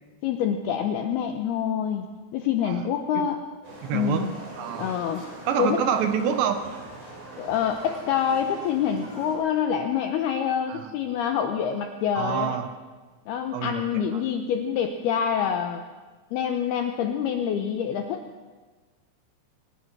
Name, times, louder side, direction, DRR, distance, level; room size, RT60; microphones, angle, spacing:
voice 1, 0.2-3.4 3.9-4.3 4.8-5.3 5.6-5.8 7.4-12.6 13.3-15.8 16.3-18.2, left 8 dB, 85° left, 6 dB, 2.3 m, -26 dB
Livestock farm animals working animals, 3.6-9.4, right 2 dB, 45° right, 6.7 m, -42 dB
voice 2, 3.8-4.3 4.6-4.9 5.5-6.6 10.7-10.8 12.2-12.7 13.5-13.8, right 8 dB, 75° right, 7 dB, 2.9 m, -26 dB
22.5 x 19.5 x 6.1 m, 1.4 s
omnidirectional pair, 5.8 m